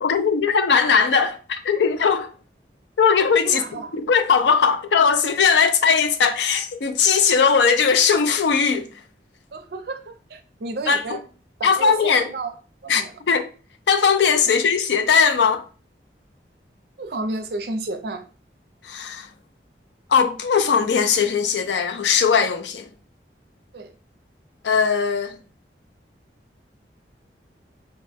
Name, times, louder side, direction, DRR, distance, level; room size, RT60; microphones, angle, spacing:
voice 1, 0.0-2.3 3.0-3.6 4.1-8.9 10.9-11.0 11.6-12.3 12.9-13.5 13.9-15.6 18.9-19.3 20.1-22.9 24.6-25.4, left 6 dB, 85° left, 0.4 m, -19 dB
voice 2, 3.4-4.0 9.5-11.2 11.6-12.6 12.8-13.2 14.4-14.7 17.0-18.2 23.7-23.9, right 2 dB, 65° right, 0.5 m, -32 dB
4.1 x 2.0 x 3.4 m
head